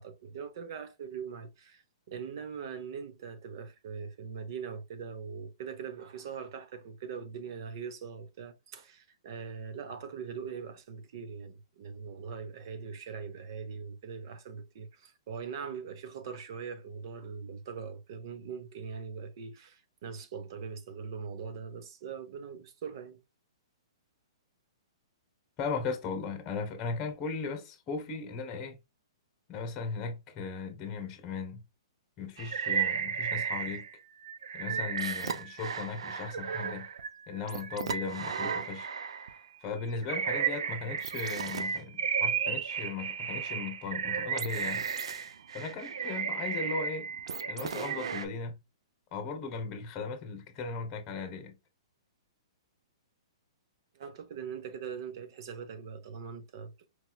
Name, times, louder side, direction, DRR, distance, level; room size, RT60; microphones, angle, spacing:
voice 1, 0.0-23.2 53.9-56.9, right 6 dB, 50° right, 0.9 m, -41 dB
voice 2, 25.6-28.8 29.5-31.6 32.2-33.8 34.5-36.9 37.3-38.9 39.6-44.8 45.5-47.1 47.5-48.6 49.1-51.5, left 4 dB, 25° left, 1.0 m, -37 dB
sound 1, 32.4-33.9 34.2-39.4 39.9-48.3, right 7 dB, 80° right, 0.6 m, -34 dB
4.6 x 3.0 x 2.3 m
hypercardioid pair, 155°, 3 cm